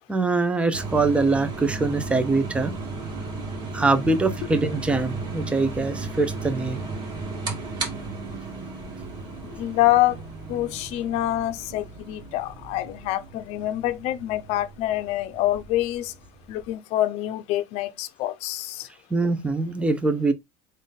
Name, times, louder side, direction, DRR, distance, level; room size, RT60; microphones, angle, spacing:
voice 1, 0.1-2.7 3.7-6.8 19.1-20.3, right 3 dB, 10° right, 0.7 m, -23 dB
sound 1, 0.7-16.7, right 3 dB, 35° right, 1.6 m, -35 dB
voice 2, 9.4-10.2 10.5-16.1 16.5-18.9, left 15 dB, 55° left, 0.6 m, -26 dB
3.8 x 2.6 x 3.9 m
supercardioid pair, 115°, 13 cm